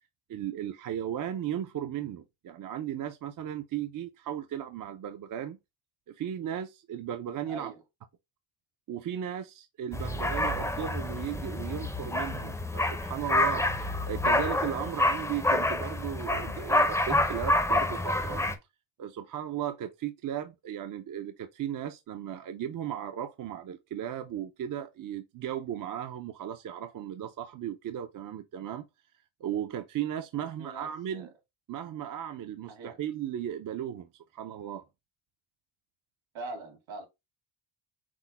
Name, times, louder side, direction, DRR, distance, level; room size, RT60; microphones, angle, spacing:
voice 1, 0.3-5.6 6.1-7.7 8.9-18.4 19.0-28.8 29.4-31.3 31.7-34.8, right 10 dB, 45° right, 0.5 m, -36 dB
voice 2, 7.5-7.8 30.4-31.3 32.7-33.0 36.3-37.1, right 2 dB, 70° right, 2.0 m, -42 dB
sound 1, 9.9-18.5, left 1 dB, 5° left, 0.5 m, -28 dB
6.1 x 2.1 x 4.0 m
cardioid pair, 145°, 47 cm